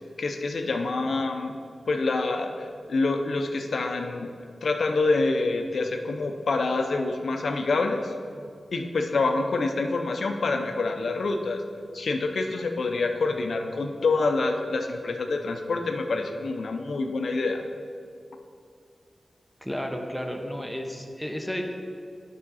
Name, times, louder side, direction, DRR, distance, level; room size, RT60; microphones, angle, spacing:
voice 1, 0.2-1.5 1.9-4.3 4.6-8.1 8.7-11.6 11.9-17.6, left 3 dB, 70° left, 5 dB, 0.5 m, -26 dB
voice 2, 19.6-21.6, equal, ahead, 2 dB, 0.7 m, -32 dB
8.6 x 5.7 x 4.1 m, 2.2 s
wide cardioid pair, 100°, 0 cm